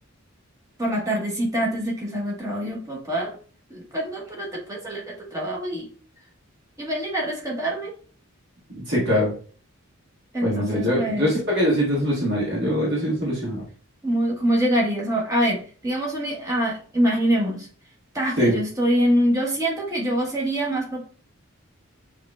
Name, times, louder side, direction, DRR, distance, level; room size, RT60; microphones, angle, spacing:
voice 1, 0.8-3.4 3.7-5.9 6.8-7.9 10.3-11.4 14.0-17.7 18.1-21.0, equal, 15° right, -2 dB, 1.2 m, -25 dB
voice 2, 8.9-9.3 10.4-13.6 18.4-18.5, equal, 50° right, -5 dB, 1.8 m, -22 dB
6.7 x 3.2 x 2.3 m, 0.42 s
head